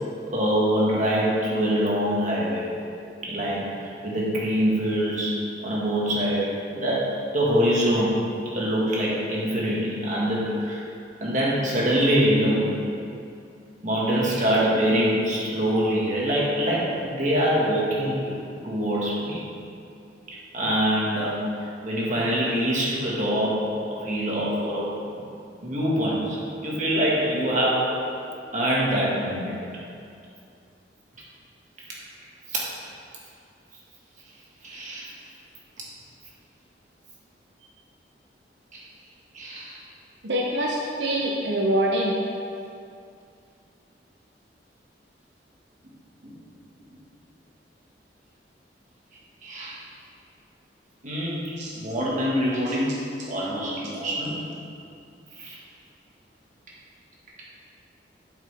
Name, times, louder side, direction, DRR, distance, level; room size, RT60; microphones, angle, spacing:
voice 1, 0.3-2.7 3.2-10.8 11.2-12.8 13.8-19.5 20.5-21.4 21.8-23.6 23.9-25.3 25.6-27.9 28.5-29.6 32.5-32.6 34.6-35.1 38.7-38.8 39.3-39.8 46.2-46.3 49.4-49.8 51.0-52.9 53.3-54.4 55.4-55.6, equal, 45° right, -6 dB, 1.9 m, -24 dB
voice 2, 40.2-42.2 51.6-51.8, right 1 dB, 80° right, -2 dB, 0.9 m, -25 dB
8.9 x 7.5 x 3.6 m, 2.5 s
head